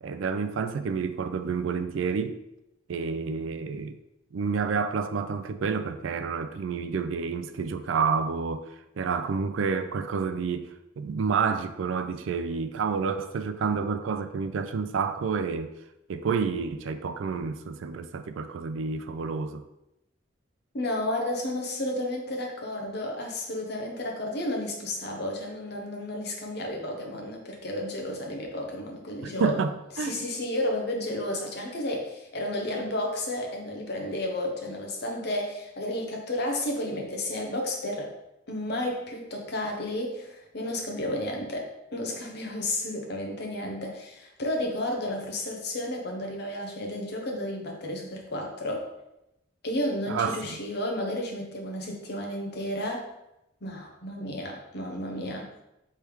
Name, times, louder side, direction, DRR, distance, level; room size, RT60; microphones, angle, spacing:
voice 1, 0.0-2.4 2.9-4.0 4.3-15.7 16.1-19.6 29.2-30.3 50.1-50.6, right 5 dB, 75° right, 0.3 m, -29 dB
voice 2, 20.7-29.6 30.0-38.1 38.5-48.9 49.6-53.1 53.6-55.5, left 1 dB, 55° left, 0.8 m, -32 dB
3.4 x 3.2 x 4.5 m
head